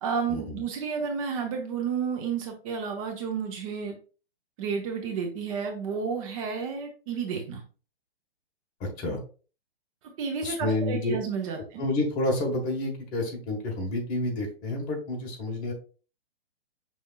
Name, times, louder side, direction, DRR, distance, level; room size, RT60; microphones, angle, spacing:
voice 1, 0.0-3.9 4.6-7.6 10.2-11.8, right 6 dB, 35° right, 3 dB, 0.8 m, -31 dB
voice 2, 8.8-9.2 10.4-11.2 11.8-15.7, left 2 dB, 25° left, 0 dB, 1.5 m, -29 dB
5.9 x 3.5 x 2.4 m, 0.37 s
hypercardioid pair, 125°, 31 cm